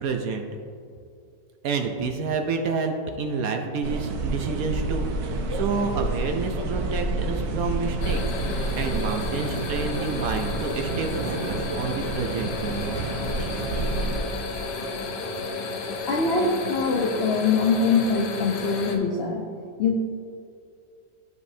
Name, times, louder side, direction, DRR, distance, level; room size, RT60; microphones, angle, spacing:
voice 1, 0.0-0.5 1.6-8.5 8.7-13.0, right 4 dB, 65° right, 4 dB, 1.0 m, -29 dB
sound 1, 3.8-14.2, right 2 dB, 90° right, 1.4 m, -29 dB
sound 2, 8.0-19.0, left 3 dB, 85° left, 1.5 m, -32 dB
voice 2, 16.1-19.5 19.8-20.0, left 4 dB, 70° left, 0 dB, 0.6 m, -23 dB
13.0 x 5.3 x 2.7 m, 2.4 s
omnidirectional pair, 1.8 m